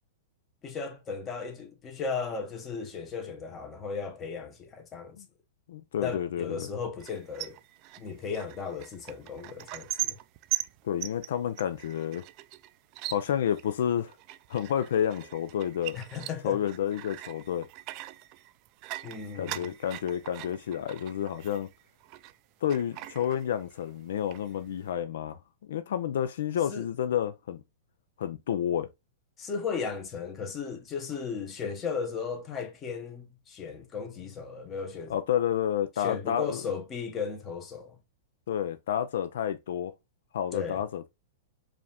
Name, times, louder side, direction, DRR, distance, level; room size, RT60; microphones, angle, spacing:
voice 1, 0.6-5.2 6.0-7.6 8.0-10.2 15.9-16.6 19.0-19.7 26.7-26.9 29.4-35.1 36.0-38.0 40.5-40.8, left 5 dB, 20° left, 1.0 m, -36 dB
voice 2, 5.7-6.7 10.8-12.2 13.1-14.1 14.5-16.0 16.4-17.7 19.3-21.7 22.6-25.4 25.7-27.6 28.2-28.9 35.1-36.6 38.5-39.9 40.3-41.1, left 9 dB, 70° left, 0.5 m, -30 dB
sound 1, 7.0-22.4 22.7-23.9 24.2-24.9, right 16 dB, 35° right, 0.3 m, -41 dB
4.9 x 2.5 x 3.4 m
supercardioid pair, 155°, 0 cm